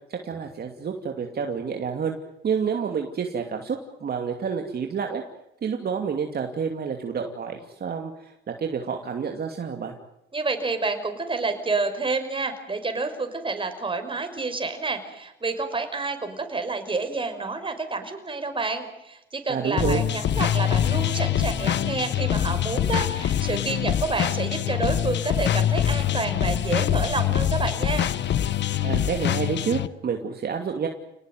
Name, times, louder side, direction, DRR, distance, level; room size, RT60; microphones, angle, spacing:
voice 1, 0.1-2.2 2.4-5.2 5.6-9.9 19.5-20.0 28.8-30.9, right 6 dB, 50° right, 3 dB, 2.7 m, -29 dB
voice 2, 10.3-28.1, right 3 dB, 25° right, 7 dB, 5.7 m, -29 dB
sound 1, 19.8-29.9, left 11 dB, 65° left, 1.1 m, -24 dB
29.5 x 19.5 x 9.4 m, 0.87 s
cardioid pair, 90°, 20 cm